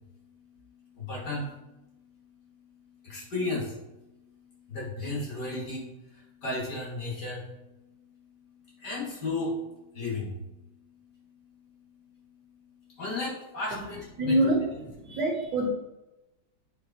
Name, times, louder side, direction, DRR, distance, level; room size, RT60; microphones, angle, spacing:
voice 1, 1.0-1.5 3.0-3.7 4.7-7.4 8.8-9.6 9.9-10.3 13.0-14.4, left 2 dB, 50° left, -5 dB, 2.7 m, -33 dB
voice 2, 14.2-14.6 15.0-15.7, right 1 dB, 60° right, -1 dB, 2.0 m, -25 dB
8.2 x 5.0 x 3.0 m, 0.95 s
omnidirectional pair, 2.3 m